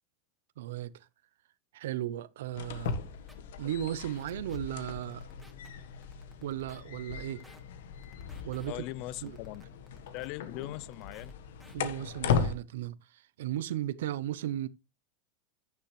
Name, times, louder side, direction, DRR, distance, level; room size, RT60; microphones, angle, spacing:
voice 1, 0.6-0.9 1.7-2.9 3.6-5.3 6.4-7.4 8.4-8.8 9.2-9.4 11.7-14.7, right 12 dB, 75° right, 0.7 m, -36 dB
sound 1, 2.5-12.5, left 6 dB, 75° left, 1.4 m, -37 dB
sound 2, 2.8-2.9 3.3-3.4 3.7-4.6 4.9-5.7 6.0-6.8 7.2-7.6 8.0-8.7 9.1-10.3 10.6-11.3 11.6-11.8, equal, ahead, 2.6 m, -58 dB
voice 2, 8.7-9.6 10.1-11.3, left 18 dB, 55° left, 0.5 m, -40 dB
10.5 x 9.0 x 3.2 m
hypercardioid pair, 105°, 0 cm